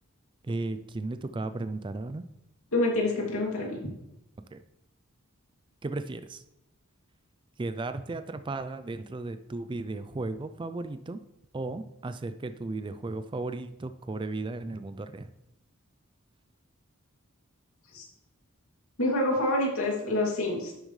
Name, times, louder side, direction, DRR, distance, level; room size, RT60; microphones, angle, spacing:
voice 1, 0.4-2.2 4.5-4.6 5.8-6.4 7.6-11.2 11.5-15.3, right 2 dB, 20° right, 11 dB, 0.4 m, -35 dB
voice 2, 2.7-3.8 17.9-18.1 19.0-20.7, left 1 dB, 75° left, -2 dB, 2.6 m, -27 dB
10.5 x 7.2 x 3.2 m, 0.88 s
head